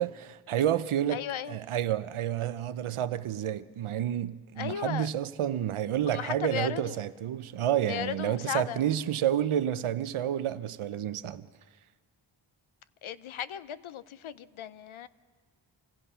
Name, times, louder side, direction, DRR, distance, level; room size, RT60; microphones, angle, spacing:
voice 1, 0.0-1.2 1.5-11.5, right 10 dB, 90° right, 0.8 m, -30 dB
voice 2, 1.1-1.6 4.6-5.1 6.1-7.0 7.9-8.8 13.0-15.1, left 10 dB, 80° left, 0.7 m, -36 dB
26.5 x 17.5 x 5.6 m
wide cardioid pair, 110°, 48 cm